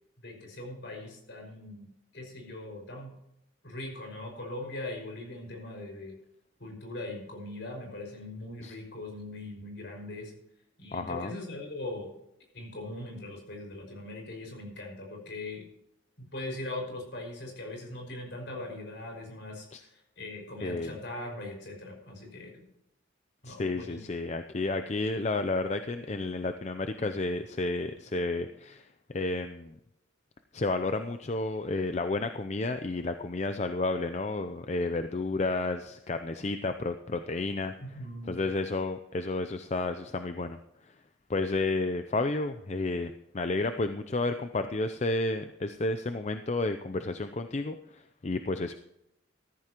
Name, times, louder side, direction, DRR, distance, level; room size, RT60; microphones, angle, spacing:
voice 1, 0.2-1.9 2.1-3.1 3.6-6.1 6.6-10.3 10.8-12.1 12.5-15.7 16.2-22.7 23.4-24.0 37.8-38.4, left 2 dB, 60° left, 1 dB, 5.5 m, -40 dB
voice 2, 10.9-11.3 19.7-19.8 20.6-21.0 23.4-28.9 29.1-29.8 30.5-37.7 38.3-40.6 41.3-48.7, left 2 dB, 35° left, 8 dB, 0.5 m, -31 dB
14.0 x 14.0 x 3.0 m, 0.83 s
head